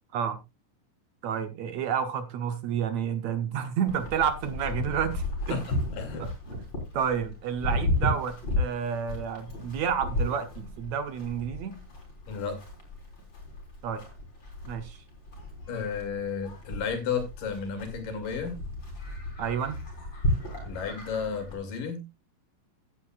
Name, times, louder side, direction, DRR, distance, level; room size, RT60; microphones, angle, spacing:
voice 1, 1.2-5.6 6.2-6.3 6.9-11.8 13.8-14.0 14.6-15.0 19.4-19.8, right 8 dB, 65° right, 1.9 m, -30 dB
Livestock farm animals working animals, 3.9-21.6, left 1 dB, 35° left, 4.4 m, -34 dB
voice 2, 5.5-6.3 12.3-12.6 15.7-18.6 20.6-22.0, left 6 dB, 85° left, 4.1 m, -33 dB
15.0 x 9.9 x 2.4 m
omnidirectional pair, 3.8 m